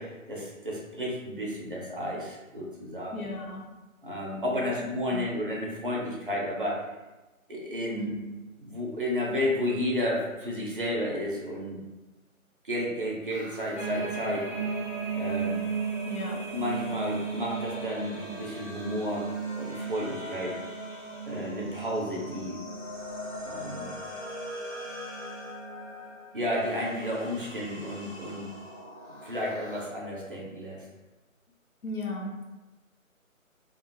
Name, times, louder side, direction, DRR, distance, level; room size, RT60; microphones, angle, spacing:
voice 1, 0.0-3.2 4.0-6.8 7.5-8.1 8.6-11.8 12.6-14.5 15.1-15.6 16.5-19.3 19.5-20.6 21.3-22.6 23.4-24.0 26.3-28.5 29.2-30.8, left 1 dB, 40° right, -3 dB, 0.5 m, -32 dB
voice 2, 3.1-3.7 4.5-4.7 5.1-5.3 7.9-8.2 16.0-16.6 31.8-32.5, left 2 dB, 90° left, 0 dB, 0.7 m, -36 dB
sound 1, 13.3-29.9, left 1 dB, 25° left, 0.6 m, -43 dB
sound 2, 13.8-26.1 26.6-26.9 27.3-28.0 28.7-28.8, right 5 dB, 50° left, 0.9 m, -36 dB
2.4 x 2.1 x 2.8 m, 1.1 s
figure-of-eight pair, 150°, 42 cm